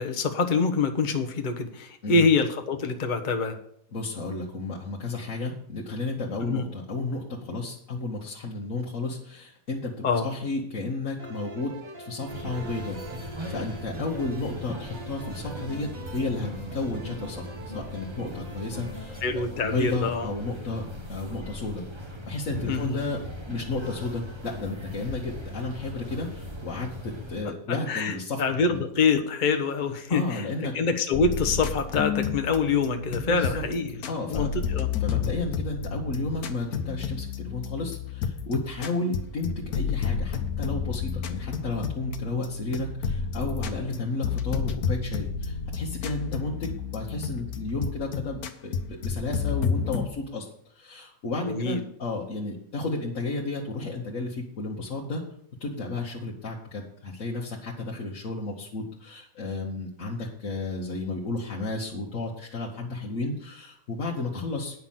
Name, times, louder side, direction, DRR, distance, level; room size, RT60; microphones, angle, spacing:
voice 1, 0.0-3.6 6.5-6.6 10.0-10.3 19.2-20.3 22.7-23.0 27.7-33.9 34.3-34.9 51.4-51.8, left 4 dB, 40° left, 5 dB, 1.0 m, -25 dB
voice 2, 3.9-20.8 21.1-21.8 22.3-23.2 23.5-28.4 28.7-28.8 30.1-30.7 33.2-33.6 34.1-34.5 35.0-55.2 55.6-64.8, left 3 dB, 60° left, -3 dB, 1.6 m, -32 dB
sound 1, 11.2-19.2, right 2 dB, 65° right, 2.2 m, -42 dB
sound 2, 12.3-27.4, left 1 dB, 20° right, 1.0 m, -39 dB
sound 3, 31.1-50.1, left 6 dB, 90° left, 1.3 m, -31 dB
9.5 x 5.8 x 7.4 m, 0.68 s
omnidirectional pair, 1.5 m